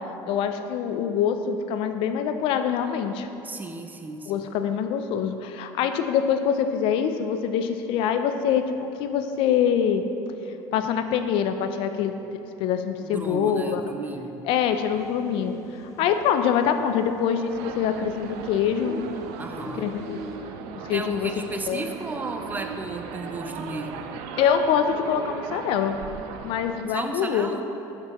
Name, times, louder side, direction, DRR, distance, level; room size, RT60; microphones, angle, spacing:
voice 1, 0.3-3.3 4.3-10.0 10.7-13.8 14.5-19.0 19.8-20.2 20.8-21.8 24.4-26.0 26.4-27.5, left 8 dB, 70° left, 8 dB, 0.4 m, -25 dB
voice 2, 3.4-4.3 13.0-14.4 19.4-19.9 20.9-24.1 26.9-27.7, right 3 dB, 20° right, 5 dB, 0.5 m, -34 dB
sound 1, 14.7-20.4, left 1 dB, 30° left, 1.0 m, -44 dB
sound 2, 17.5-26.8, right 6 dB, 80° right, 0.4 m, -38 dB
6.7 x 6.5 x 3.0 m, 3.0 s
supercardioid pair, 90°, 10 cm